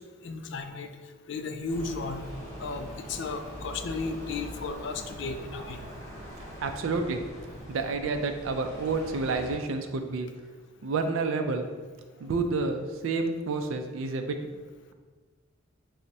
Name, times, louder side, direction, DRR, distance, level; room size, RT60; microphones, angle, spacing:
voice 1, 0.2-0.9 1.3-2.2 2.6-5.8, left 4 dB, 60° left, 7 dB, 0.3 m, -34 dB
sound 1, 1.7-9.6, equal, 15° left, 0.8 m, -42 dB
voice 2, 6.6-7.2 7.7-10.3 10.8-11.7 12.2-14.4, right 3 dB, 80° right, 6 dB, 0.4 m, -29 dB
5.7 x 2.1 x 2.6 m, 1.4 s
head